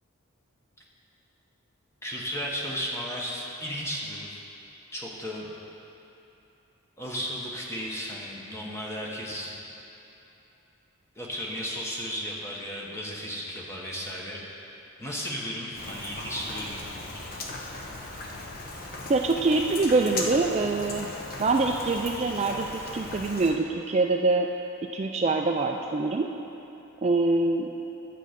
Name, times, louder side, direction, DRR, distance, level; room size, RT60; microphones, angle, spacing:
voice 1, 2.0-4.4 4.9-5.5 7.0-9.5 11.1-14.7 15.0-16.9, equal, 10° left, -3 dB, 1.2 m, -34 dB
Rain, 15.7-23.5, left 2 dB, 45° left, 0.9 m, -38 dB
voice 2, 19.1-21.1 21.4-24.5 24.9-26.3 27.0-27.7, right 3 dB, 30° right, 2 dB, 0.3 m, -24 dB
10.5 x 7.5 x 5.2 m, 2.9 s
head